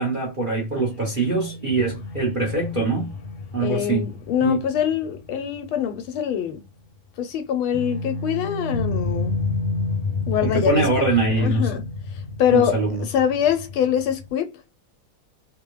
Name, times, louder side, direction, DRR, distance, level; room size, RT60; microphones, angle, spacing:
voice 1, 0.0-3.1 3.5-4.0 4.4-4.6 10.4-11.7 12.5-13.0, right 3 dB, 40° right, 0.7 m, -23 dB
sound 1, 0.7-6.1 6.4-6.5 7.7-14.3, left 3 dB, 60° left, 1.2 m, -31 dB
voice 2, 3.6-6.6 7.2-9.3 10.3-11.1 11.4-11.8 12.1-14.5, left 9 dB, 85° left, 1.6 m, -24 dB
3.4 x 2.3 x 3.1 m
omnidirectional pair, 2.2 m